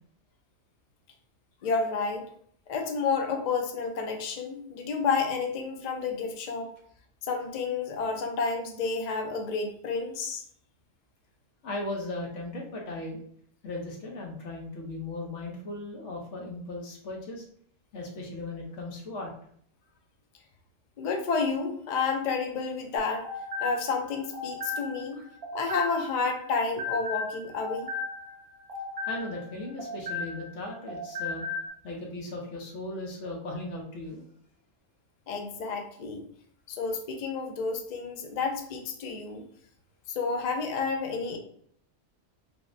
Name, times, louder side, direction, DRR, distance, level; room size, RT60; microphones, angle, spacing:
voice 1, 1.6-2.2 2.7-6.7 7.2-10.4 21.0-23.3 23.6-25.2 25.5-27.9 35.3-36.2 36.7-39.5 40.1-41.4, left 4 dB, 85° left, 4 dB, 0.3 m, -30 dB
voice 2, 11.6-13.2 13.6-17.5 17.9-19.3 29.1-31.4 31.8-34.2, left 2 dB, 70° left, 0 dB, 1.0 m, -37 dB
sound 1, 23.0-26.2 26.5-30.6 30.9-31.7, left 3 dB, 55° right, 0.9 m, -36 dB
3.4 x 2.0 x 2.5 m, 0.63 s
omnidirectional pair, 1.3 m